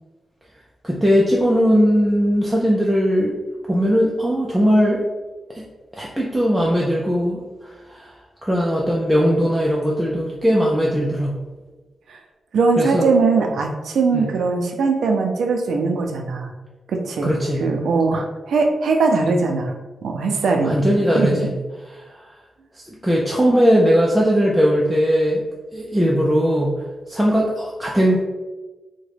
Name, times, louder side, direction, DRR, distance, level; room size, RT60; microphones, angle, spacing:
voice 1, 0.8-3.4 3.7-5.0 5.5-5.6 5.9-8.1 8.4-11.4 12.8-13.1 14.1-14.3 17.2-17.6 20.6-21.5 22.0-22.3 22.7-25.4 25.7-26.8 27.1-28.2, equal, 5° right, -4 dB, 0.3 m, -19 dB
voice 2, 12.5-16.5 16.9-19.7 20.0-20.8 21.2-21.3, right 4 dB, 90° right, 3 dB, 0.4 m, -20 dB
3.6 x 2.1 x 3.2 m, 1.2 s
wide cardioid pair, 175°, 0 cm